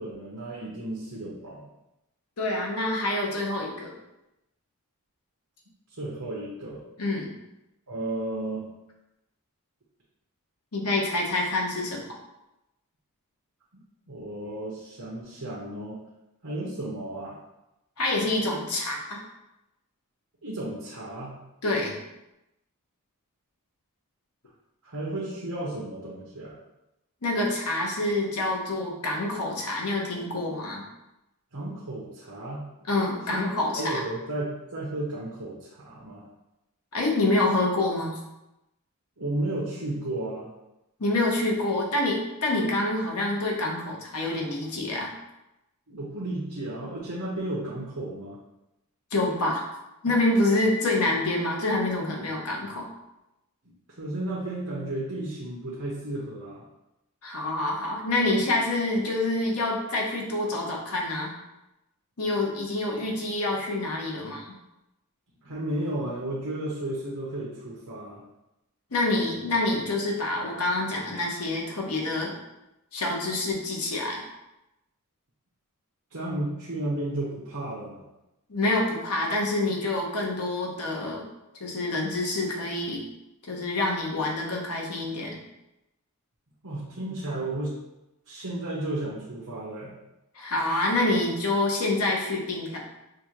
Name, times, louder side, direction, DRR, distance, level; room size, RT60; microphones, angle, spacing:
voice 1, 0.0-1.7 6.0-6.8 7.9-8.7 14.1-16.0 16.4-17.4 20.4-21.3 24.8-26.5 31.5-32.6 33.3-33.5 33.7-36.2 39.2-40.5 45.9-48.4 53.6-56.6 65.4-68.2 76.1-78.0 86.6-87.7 88.3-89.9, right 1 dB, 70° right, -6 dB, 1.0 m, -33 dB
voice 2, 2.4-3.9 7.0-7.3 10.7-12.1 18.0-19.2 21.6-21.9 27.2-30.8 32.9-33.9 36.9-38.2 41.0-45.1 49.1-49.6 50.0-52.9 57.2-61.3 62.2-64.4 68.9-72.3 72.9-74.2 78.5-81.2 81.6-83.0 83.5-85.4 90.3-92.8, left 2 dB, 80° left, -1 dB, 1.0 m, -27 dB
6.1 x 2.5 x 3.0 m, 0.92 s
head